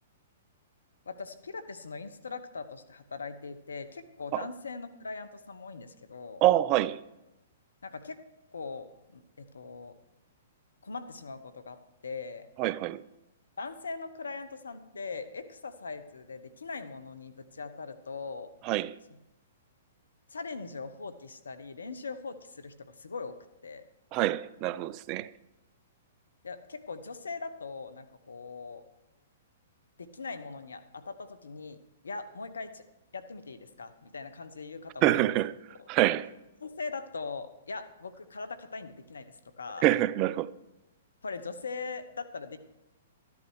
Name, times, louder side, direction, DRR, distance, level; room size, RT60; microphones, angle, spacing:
voice 1, 1.1-6.4 7.8-8.2 8.5-9.9 10.8-12.5 13.6-18.5 20.3-23.4 23.6-23.8 26.4-28.8 30.0-32.8 33.1-35.3 35.8-35.9 36.6-39.8 41.2-42.6, left 4 dB, 80° left, 1.0 m, -41 dB
voice 2, 6.4-7.0 12.6-13.0 18.7-18.9 24.1-25.3 35.0-35.5 35.9-36.3 39.8-40.5, right 15 dB, 35° right, 0.4 m, -26 dB
13.0 x 11.0 x 4.7 m
hypercardioid pair, 120°, 0 cm